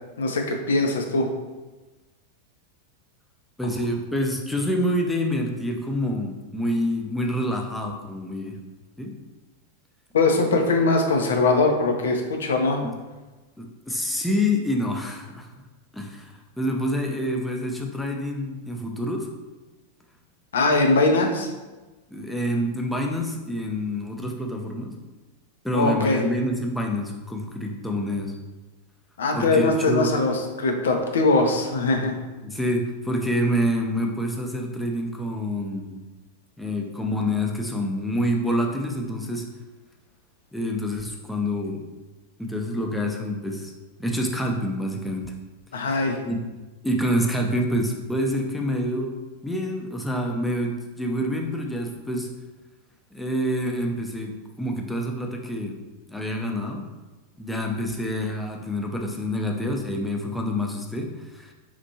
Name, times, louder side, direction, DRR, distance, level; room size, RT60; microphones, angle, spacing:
voice 1, 0.2-1.3 10.1-12.8 20.5-21.5 25.7-26.2 29.2-32.2 45.7-46.2, left 3 dB, 65° left, 3 dB, 0.5 m, -21 dB
voice 2, 3.6-8.6 9.0-9.1 12.8-12.9 13.6-15.5 15.9-19.3 22.1-25.0 25.6-28.4 29.3-30.1 32.4-36.0 36.6-39.4 40.5-41.8 42.4-43.7 44.0-45.3 45.7-46.4 46.8-52.3 53.1-55.8 56.1-56.8 57.4-61.5, equal, 5° left, 1 dB, 0.5 m, -27 dB
4.4 x 2.5 x 2.7 m, 1.2 s
figure-of-eight pair, 90°, 0 cm